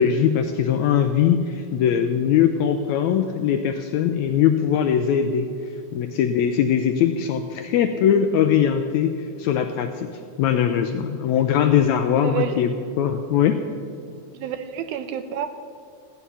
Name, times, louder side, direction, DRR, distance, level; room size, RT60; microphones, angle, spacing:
voice 1, 0.0-5.5 5.9-10.1 10.4-13.6, left 8 dB, 80° left, 6 dB, 1.6 m, -21 dB
voice 2, 12.2-12.6 14.3-15.5, right 9 dB, 75° right, 9 dB, 2.1 m, -29 dB
15.5 x 9.3 x 5.6 m, 2.4 s
omnidirectional pair, 3.8 m